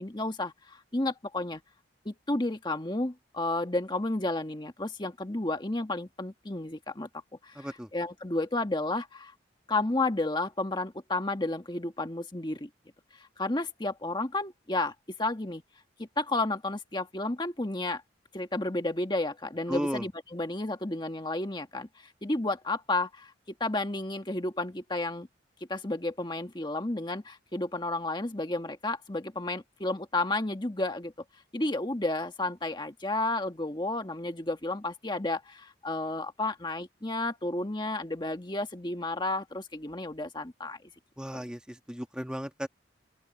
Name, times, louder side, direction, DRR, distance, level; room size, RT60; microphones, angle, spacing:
voice 1, 0.0-1.6 2.0-7.1 7.4-7.7 7.9-9.3 9.7-12.7 13.1-15.6 16.0-18.0 18.3-23.3 23.6-25.3 25.7-31.1 31.5-40.8 41.3-41.4, left 2 dB, 25° left, 1.5 m, -32 dB
voice 2, 7.5-7.9 19.7-20.1 41.2-42.7, equal, 5° right, 1.6 m, -35 dB
open air
head